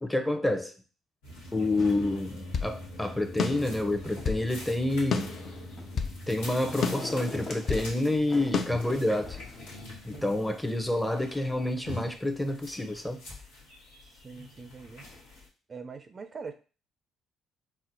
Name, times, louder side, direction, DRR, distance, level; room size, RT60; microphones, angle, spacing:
voice 1, 0.0-0.7 1.5-5.3 6.3-9.4 10.0-13.2, left 1 dB, 10° left, 6 dB, 0.6 m, -28 dB
sound 1, 1.2-15.5, left 1 dB, 85° left, 1.0 m, -44 dB
sound 2, 1.8-2.8 3.4-4.5 5.1-6.2 6.8-7.9 8.5-8.7, left 6 dB, 50° left, 0.4 m, -32 dB
sound 3, 5.4-6.0 6.3-7.9 8.3-9.7 10.1-10.2, left 2 dB, 35° left, 1.1 m, -41 dB
voice 2, 14.2-15.0 15.7-16.5, right 5 dB, 40° right, 8 dB, 0.4 m, -43 dB
4.2 x 2.0 x 2.7 m, 0.36 s
hypercardioid pair, 55°, 0 cm